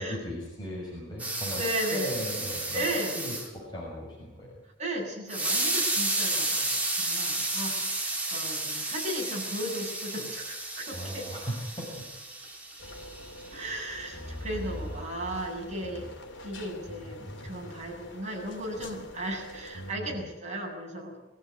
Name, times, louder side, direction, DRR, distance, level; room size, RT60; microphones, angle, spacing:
voice 1, 0.0-2.8 3.1-4.6 10.9-12.1 14.1-15.3 15.8-16.1 19.7-20.2, equal, 25° left, -5 dB, 6.5 m, -38 dB
sound 1, 1.2-3.5 5.3-13.6, right 2 dB, 10° right, 4.1 m, -32 dB
voice 2, 1.6-2.1 2.7-3.1 4.8-11.3 13.5-16.0 16.4-21.2, right 1 dB, 40° right, -1 dB, 7.7 m, -35 dB
sound 2, 12.8-19.9, left 1 dB, 75° left, 3.1 m, -44 dB
24.0 x 14.5 x 9.6 m, 1.0 s
head